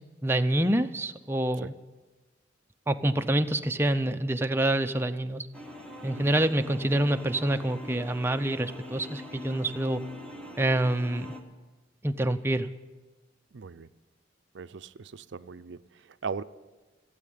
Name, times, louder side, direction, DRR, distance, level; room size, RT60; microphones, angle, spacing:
voice 1, 0.2-1.7 2.9-5.5 6.0-10.0 10.6-11.3 12.0-12.7, right 1 dB, 10° right, 0.5 m, -26 dB
sound 1, 5.5-11.4, left 1 dB, 5° left, 1.3 m, -43 dB
voice 2, 13.5-13.9 14.5-16.4, right 5 dB, 65° right, 0.5 m, -39 dB
15.5 x 8.5 x 9.3 m
head